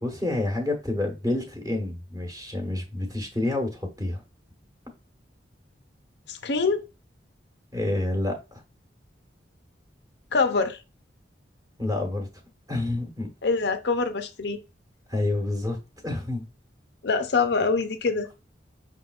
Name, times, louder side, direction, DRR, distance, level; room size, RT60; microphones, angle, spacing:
voice 1, 0.0-4.2 7.7-8.4 11.8-12.3 12.7-13.3 15.1-15.8 16.0-16.4, left 2 dB, 20° right, 1.2 m, -28 dB
voice 2, 6.3-6.9 10.3-10.8 13.4-14.6 17.0-18.3, left 4 dB, 65° left, 0.6 m, -24 dB
5.5 x 3.5 x 2.4 m
head